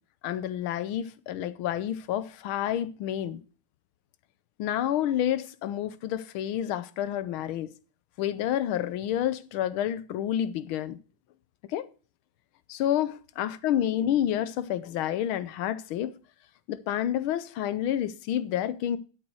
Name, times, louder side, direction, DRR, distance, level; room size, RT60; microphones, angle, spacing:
voice 1, 0.2-3.4 4.6-7.7 8.2-11.0 11.7-11.9 12.7-16.1 16.7-19.0, left 11 dB, 85° left, 1.6 m, -29 dB
8.3 x 7.9 x 6.2 m
omnidirectional pair, 2.2 m